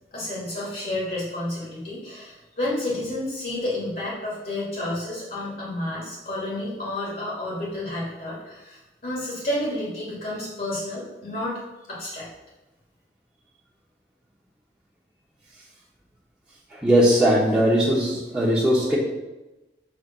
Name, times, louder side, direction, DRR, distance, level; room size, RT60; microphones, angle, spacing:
voice 1, 0.1-11.6 11.9-12.3, left 1 dB, 50° left, -6 dB, 2.1 m, -30 dB
voice 2, 16.7-19.0, equal, 5° right, -10 dB, 1.1 m, -19 dB
6.6 x 3.3 x 6.0 m, 1.1 s
head